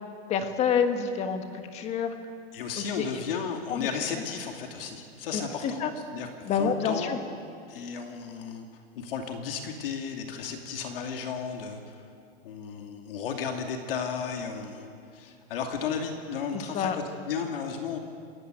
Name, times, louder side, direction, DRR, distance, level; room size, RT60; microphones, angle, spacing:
voice 1, 0.3-2.1 2.8-3.0 3.7-3.9 5.3-5.9 6.4-7.2 16.5-17.0, left 6 dB, 20° left, 7 dB, 1.5 m, -28 dB
voice 2, 2.5-5.8 6.1-6.3 6.5-7.1 7.7-8.7 9.0-12.0 12.4-18.0, left 6 dB, 65° left, 3 dB, 2.7 m, -34 dB
27.0 x 15.0 x 9.1 m, 2.4 s
supercardioid pair, 160°, 31 cm